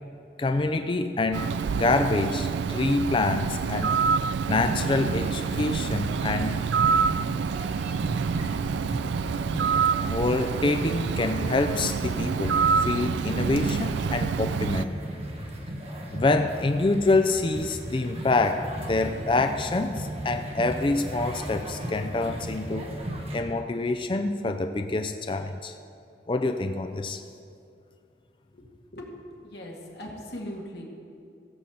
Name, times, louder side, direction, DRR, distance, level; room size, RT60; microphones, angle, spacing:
voice 1, 0.4-4.0 4.5-6.7 8.1-8.2 9.0-15.0 16.1-22.8 23.3-25.7 26.3-27.2, left 2 dB, 30° left, 7 dB, 0.4 m, -26 dB
Bird, 1.3-14.9, right 6 dB, 80° right, 0.3 m, -27 dB
sound 1, 4.4-23.4, right 1 dB, 35° right, 1.3 m, -36 dB
voice 2, 28.9-30.8, left 1 dB, 65° left, -2 dB, 2.0 m, -39 dB
15.5 x 5.4 x 7.6 m, 2.4 s
head